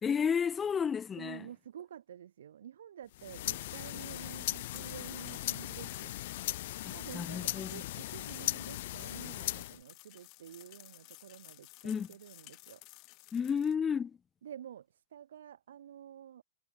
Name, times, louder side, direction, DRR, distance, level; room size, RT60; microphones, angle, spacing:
voice 1, 0.0-1.5 6.9-7.9 11.8-12.1 13.3-14.2, left 7 dB, 10° left, 0.6 m, -32 dB
voice 2, 1.2-6.1 6.9-12.8 14.4-16.4, right 10 dB, 75° right, 1.6 m, -49 dB
sound 1, 3.1-9.8, left 16 dB, 50° left, 0.7 m, -38 dB
sound 2, 4.0-13.7, left 26 dB, 30° left, 1.8 m, -55 dB
supercardioid pair, 165°, 0 cm